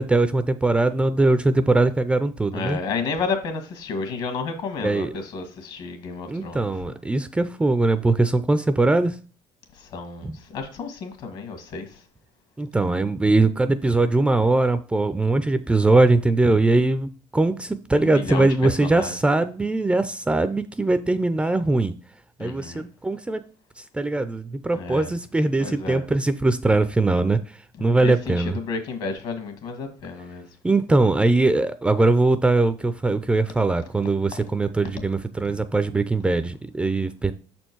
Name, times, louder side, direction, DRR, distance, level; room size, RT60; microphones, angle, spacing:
voice 1, 0.0-2.8 4.8-5.1 6.3-9.2 10.2-10.4 12.6-21.9 22.4-23.4 23.9-27.4 27.8-28.6 30.6-37.3, right 2 dB, 10° right, 0.4 m, -21 dB
voice 2, 2.5-7.0 9.8-12.0 17.9-19.1 22.4-22.8 24.7-25.1 25.6-26.0 27.8-30.5, left 4 dB, 60° left, 1.8 m, -31 dB
6.4 x 4.4 x 4.6 m
cardioid pair, 110°, 10 cm